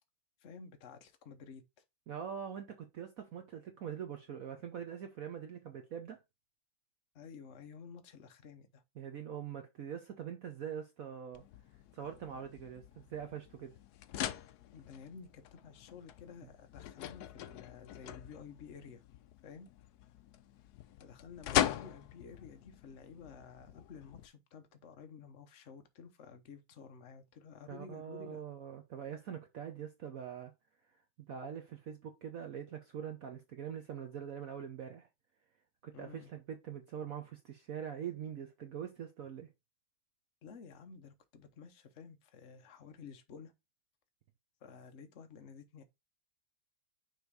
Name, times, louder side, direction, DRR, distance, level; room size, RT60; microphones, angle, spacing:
voice 1, 0.4-1.6 7.1-8.8 14.7-19.0 19.4-19.7 21.0-28.4 35.9-36.3 40.4-43.5 44.6-45.8, left 6 dB, 50° left, 1.1 m, -52 dB
voice 2, 2.1-6.2 9.0-11.4 11.9-13.7 27.7-30.5 31.3-35.1 35.8-39.5, right 8 dB, 60° right, 1.0 m, -43 dB
sound 1, 11.3-24.3, left 11 dB, 70° left, 1.0 m, -41 dB
6.2 x 3.3 x 4.6 m
omnidirectional pair, 2.0 m